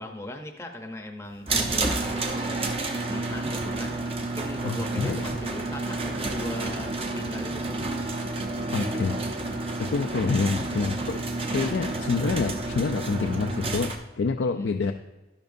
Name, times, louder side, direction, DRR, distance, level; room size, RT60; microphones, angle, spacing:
voice 1, 0.0-2.8 3.1-7.8 14.4-14.9, left 1 dB, 15° left, 4 dB, 0.7 m, -39 dB
sound 1, 1.5-13.9, right 2 dB, 30° right, 0.7 m, -30 dB
voice 2, 4.6-5.2 8.7-9.2 9.8-14.9, left 4 dB, 85° left, 5 dB, 0.4 m, -27 dB
12.0 x 10.5 x 2.6 m, 1.1 s
head